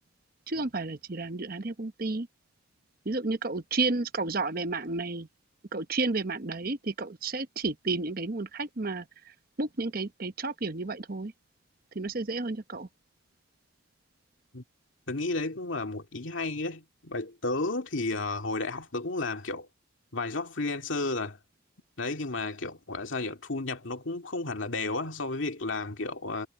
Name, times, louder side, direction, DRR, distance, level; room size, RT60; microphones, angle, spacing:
voice 1, 0.5-2.3 3.0-5.3 5.7-9.0 9.6-11.3 11.9-12.9, right 3 dB, 45° right, 1.0 m, -31 dB
voice 2, 15.1-19.7 20.1-21.4 22.0-26.5, left 3 dB, 70° left, 2.3 m, -32 dB
head